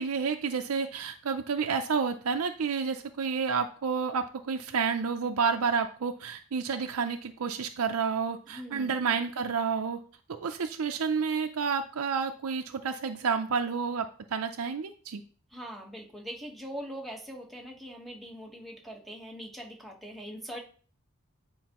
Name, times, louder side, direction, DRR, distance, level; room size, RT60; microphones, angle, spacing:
voice 1, 0.0-10.0 10.3-15.2, right 5 dB, 85° right, 5 dB, 0.5 m, -30 dB
voice 2, 8.5-9.0 15.5-20.6, equal, ahead, 0 dB, 1.2 m, -42 dB
9.2 x 4.6 x 3.0 m, 0.43 s
head